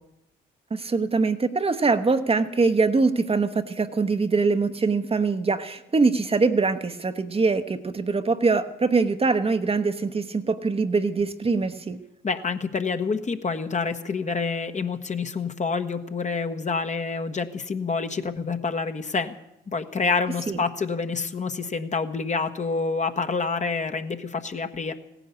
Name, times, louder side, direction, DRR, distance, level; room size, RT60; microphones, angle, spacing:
voice 1, 0.7-12.0 20.5-20.6, right 4 dB, 30° right, 9 dB, 1.0 m, -23 dB
voice 2, 12.2-19.4 19.7-24.9, left 4 dB, 35° left, 7 dB, 1.2 m, -27 dB
16.0 x 10.0 x 8.3 m, 0.88 s
supercardioid pair, 60°, 20 cm